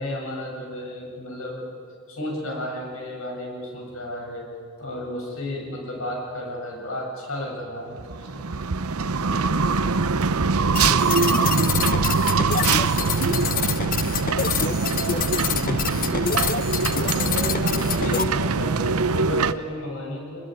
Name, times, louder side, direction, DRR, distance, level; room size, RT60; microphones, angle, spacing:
voice 1, 0.0-1.7 2.1-4.5 4.8-8.5 9.2-9.6 15.5-16.1 16.8-20.5, left 1 dB, 70° left, 0 dB, 7.6 m, -33 dB
sound 1, 8.0-19.5, right 4 dB, 80° right, 0.8 m, -23 dB
voice 2, 10.3-14.3 14.8-17.4, equal, 90° left, -1 dB, 5.2 m, -46 dB
sound 2, 10.7-18.2, left 7 dB, 40° left, 0.9 m, -27 dB
26.5 x 21.5 x 9.4 m, 2.2 s
head